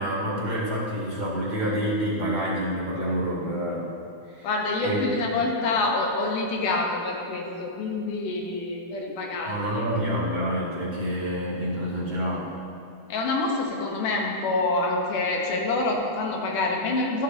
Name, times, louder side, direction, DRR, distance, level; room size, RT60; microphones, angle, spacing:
voice 1, 0.0-3.9 4.3-4.5 4.8-5.2 9.4-12.5, equal, 15° right, -8 dB, 1.7 m, -28 dB
voice 2, 4.4-9.8 13.1-17.2, left 3 dB, 85° left, 0 dB, 2.7 m, -26 dB
15.0 x 8.3 x 2.8 m, 2.5 s
omnidirectional pair, 3.6 m